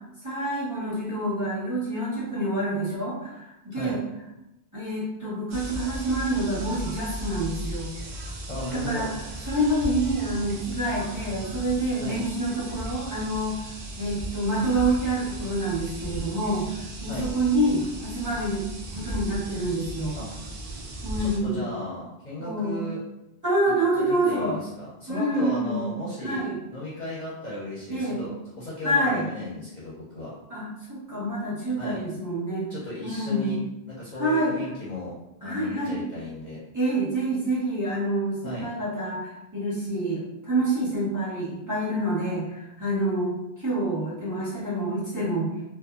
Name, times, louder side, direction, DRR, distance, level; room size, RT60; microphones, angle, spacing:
voice 1, 0.2-4.0 4.7-7.9 8.7-9.1 9.4-13.7 14.0-18.6 18.9-20.2 21.0-21.7 22.4-22.8 23.4-24.6 25.1-25.9 26.2-26.6 27.9-28.2 28.8-29.2 30.5-32.7 33.0-33.6 34.2-34.5 35.4-36.0 36.7-45.5, right 1 dB, 15° right, -10 dB, 1.1 m, -27 dB
sound 1, 5.5-21.4, right 1 dB, 60° right, 0.7 m, -36 dB
voice 2, 8.5-9.1 12.0-12.2 17.1-17.3 20.1-20.3 21.2-23.0 24.0-30.3 31.8-32.0 32.7-33.6 33.9-36.6 38.4-38.7, left 1 dB, 45° left, -8 dB, 0.7 m, -36 dB
2.6 x 2.4 x 2.3 m, 0.91 s
omnidirectional pair, 1.1 m